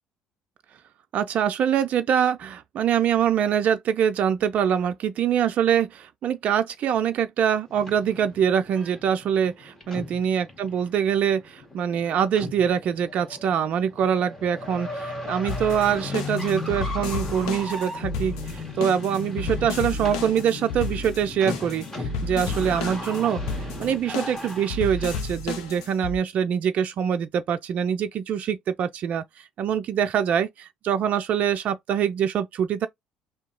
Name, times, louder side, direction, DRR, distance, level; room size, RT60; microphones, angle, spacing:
voice 1, 1.1-32.9, right 8 dB, 55° right, 0.3 m, -24 dB
sound 1, 7.7-25.2, left 3 dB, 15° left, 1.5 m, -37 dB
sound 2, 15.5-26.2, left 3 dB, 80° left, 0.6 m, -32 dB
2.8 x 2.2 x 3.7 m
hypercardioid pair, 60°, 3 cm